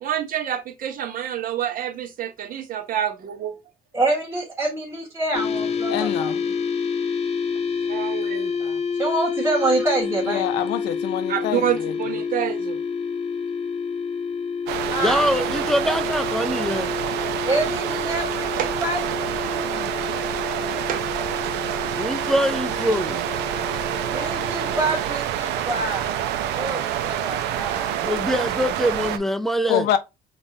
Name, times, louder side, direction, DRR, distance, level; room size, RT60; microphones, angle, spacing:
voice 1, 0.0-3.6 7.8-8.5 11.3-12.8 18.6-18.7 20.9-21.0 22.9-23.3, right 10 dB, 55° right, 0.8 m, -28 dB
voice 2, 3.9-6.5 8.6-10.5 14.9-15.3 15.8-16.0 17.5-18.5 18.8-20.0 24.1-26.1 26.5-28.0, right 2 dB, 15° right, 1.3 m, -27 dB
sound 1, 5.3-25.0, left 5 dB, 40° left, 0.6 m, -29 dB
voice 3, 5.9-6.4 10.2-11.9 29.7-30.0, left 10 dB, 80° left, 0.6 m, -25 dB
sound 2, 14.7-29.2, right 10 dB, 85° right, 0.5 m, -27 dB
voice 4, 15.0-16.9 21.9-23.2 28.0-29.9, equal, ahead, 0.4 m, -23 dB
5.3 x 2.4 x 2.7 m
cardioid pair, 110°, 17 cm